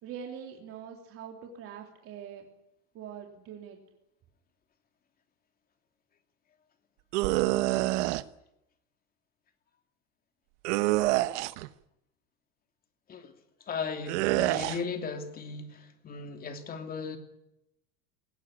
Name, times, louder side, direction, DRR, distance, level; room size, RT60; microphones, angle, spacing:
voice 1, 0.0-2.5 2.9-3.8, right 8 dB, 40° right, 2 dB, 3.2 m, -43 dB
sound 1, 7.1-8.2 10.6-11.7 14.1-14.8, right 18 dB, 75° right, 1.1 m, -26 dB
voice 2, 13.6-17.2, left 5 dB, 25° left, 6 dB, 2.8 m, -37 dB
20.5 x 18.5 x 9.9 m, 0.83 s
cardioid pair, 160°, 36 cm